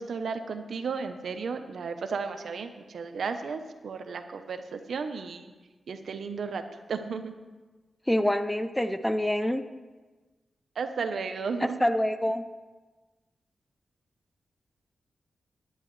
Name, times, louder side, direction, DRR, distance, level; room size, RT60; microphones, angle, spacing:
voice 1, 0.0-5.5 5.9-6.6 6.9-7.4 10.7-11.9, right 5 dB, 70° right, 7 dB, 0.9 m, -34 dB
voice 2, 8.1-9.6 11.8-12.4, left 1 dB, 5° left, 10 dB, 0.5 m, -26 dB
17.5 x 11.0 x 3.3 m, 1.3 s
wide cardioid pair, 125°, 0 cm